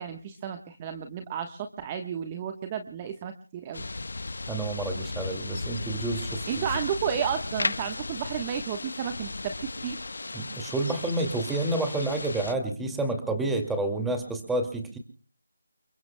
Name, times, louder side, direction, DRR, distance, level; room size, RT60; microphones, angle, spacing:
voice 1, 0.0-3.8 6.5-10.0, right 8 dB, 20° right, 6 dB, 1.2 m, -32 dB
sound 1, 3.7-12.5, left 3 dB, 65° left, 1.1 m, -35 dB
voice 2, 4.5-6.6 10.3-15.0, right 2 dB, 5° right, 4 dB, 2.2 m, -29 dB
29.5 x 22.0 x 2.2 m, 0.41 s
figure-of-eight pair, 165°, 0 cm